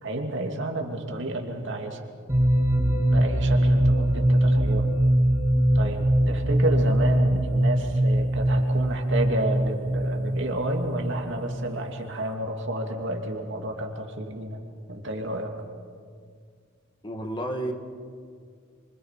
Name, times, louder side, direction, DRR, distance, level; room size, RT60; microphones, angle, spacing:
voice 1, 0.0-2.0 3.1-4.9 5.7-14.6 14.9-15.5, right 1 dB, 65° right, 2 dB, 2.8 m, -30 dB
sound 1, 2.3-11.9, right 1 dB, 15° right, 1.8 m, -22 dB
voice 2, 17.0-17.7, right 1 dB, 25° left, 4 dB, 2.1 m, -30 dB
28.0 x 25.0 x 6.0 m, 2.1 s
head